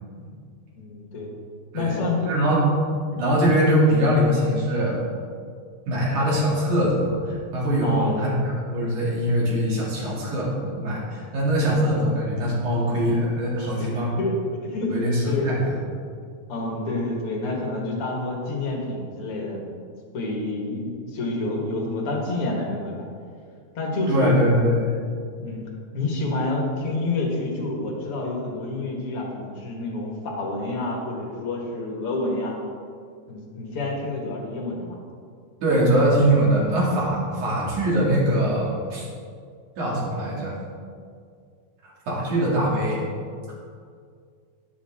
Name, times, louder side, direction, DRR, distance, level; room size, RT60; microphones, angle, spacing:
voice 1, 0.8-1.3 1.7-2.3 7.8-8.3 13.8-14.3 14.6-15.5 16.5-19.7 20.1-23.1 23.8-24.4 25.4-32.6 33.3-35.0, left 2 dB, 50° left, -1 dB, 1.9 m, -28 dB
voice 2, 2.3-2.7 3.1-5.0 5.9-14.2 14.9-15.8 24.1-24.9 35.6-39.1 39.8-40.6 42.1-43.0, equal, 55° right, -5 dB, 4.0 m, -22 dB
11.5 x 11.0 x 3.7 m, 2.2 s
omnidirectional pair, 4.3 m